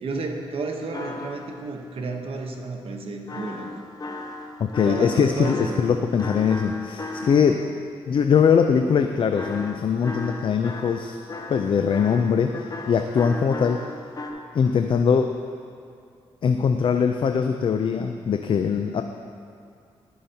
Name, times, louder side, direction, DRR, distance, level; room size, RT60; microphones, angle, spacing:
voice 1, 0.0-3.7 4.8-5.8, right 3 dB, 60° right, 2 dB, 1.0 m, -31 dB
sound 1, 0.9-1.6 3.3-7.7 9.3-14.3, left 2 dB, 35° left, 0.8 m, -35 dB
voice 2, 4.6-7.6 8.1-11.2 11.5-13.8 14.5-15.3 16.4-19.0, left 6 dB, 55° left, 6 dB, 0.4 m, -21 dB
13.5 x 5.5 x 2.8 m, 2.4 s
cardioid pair, 70°, 11 cm